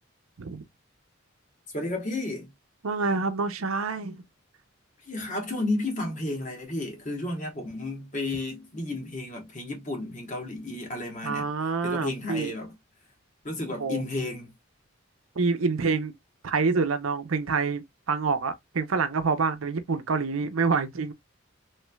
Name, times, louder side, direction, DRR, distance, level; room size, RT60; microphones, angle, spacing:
voice 1, 1.7-2.5 5.1-11.5 11.8-12.7 13.4-14.5, left 2 dB, 35° left, 1.1 m, -32 dB
voice 2, 2.8-4.2 11.2-12.5 13.8-14.0 15.4-16.1 16.4-21.1, right 4 dB, 90° right, 0.6 m, -27 dB
3.1 x 3.1 x 2.2 m
head